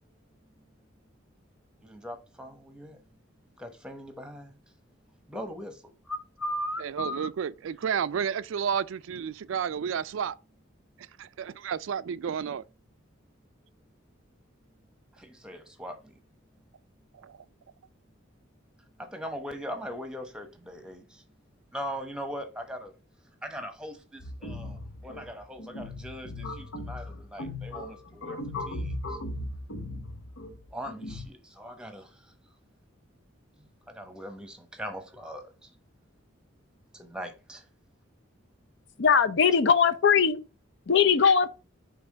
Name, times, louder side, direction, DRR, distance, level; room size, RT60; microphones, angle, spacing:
voice 1, 1.8-3.0 3.6-4.6 5.3-7.3 15.2-16.2 19.0-21.2 21.7-22.9 23.4-29.2 30.7-32.3 33.6-35.7 36.9-37.7, equal, 5° right, 0.9 m, -40 dB
voice 2, 6.8-10.4 11.2-12.6 17.1-17.4, right 7 dB, 70° right, 0.3 m, -31 dB
sound 1, 24.2-31.3, left 1 dB, 90° left, 1.1 m, -38 dB
voice 3, 39.0-40.4 40.9-41.5, left 6 dB, 60° left, 0.6 m, -20 dB
5.5 x 3.5 x 5.1 m
head